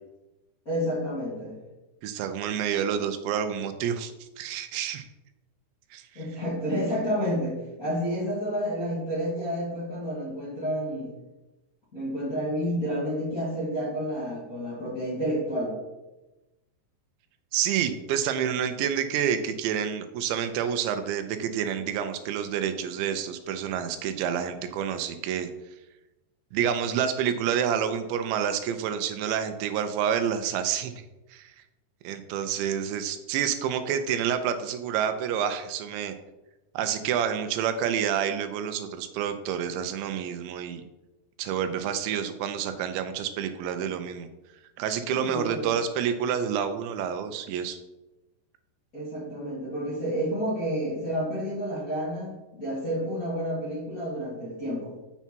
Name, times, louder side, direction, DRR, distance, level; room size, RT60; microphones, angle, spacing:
voice 1, 0.6-1.6 6.1-11.1 11.9-15.8 45.1-45.7 48.9-54.9, equal, 35° left, -8 dB, 1.4 m, -30 dB
voice 2, 2.0-5.0 5.9-6.2 17.5-25.5 26.5-31.1 31.3-31.6 32.0-36.1 36.7-40.9 41.4-44.3 44.8-47.8, right 8 dB, 80° right, 9 dB, 2.8 m, -28 dB
7.0 x 7.0 x 4.5 m, 1.0 s
omnidirectional pair, 5.2 m